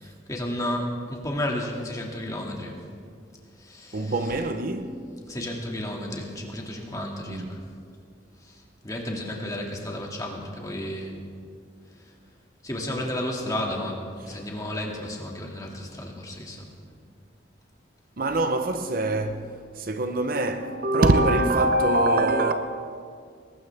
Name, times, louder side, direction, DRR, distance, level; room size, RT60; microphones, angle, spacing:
voice 1, 0.0-2.8 3.6-4.1 5.3-7.6 8.4-8.5 8.8-11.2 12.6-16.7, left 1 dB, 20° left, 2.2 m, -32 dB
voice 2, 3.9-5.1 7.3-7.6 14.3-14.4 18.2-22.5, right 2 dB, 50° right, 0.8 m, -24 dB
21.5 x 19.5 x 3.5 m
head